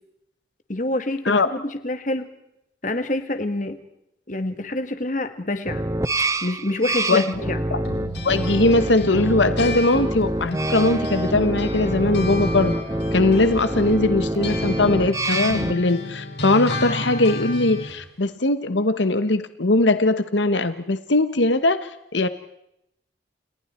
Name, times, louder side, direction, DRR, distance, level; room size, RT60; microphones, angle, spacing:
voice 1, 0.7-2.3 2.8-3.8 4.3-5.9 6.4-7.6, left 1 dB, 45° left, 9 dB, 1.9 m, -27 dB
sound 1, 5.7-15.7, right 1 dB, 15° right, 0.8 m, -26 dB
sound 2, 7.8-11.3 11.6-18.0, left 2 dB, 70° left, 4.9 m, -33 dB
voice 2, 8.2-12.7 13.1-22.3, left 2 dB, 85° left, 11 dB, 1.3 m, -20 dB
29.5 x 29.0 x 4.4 m, 0.82 s
head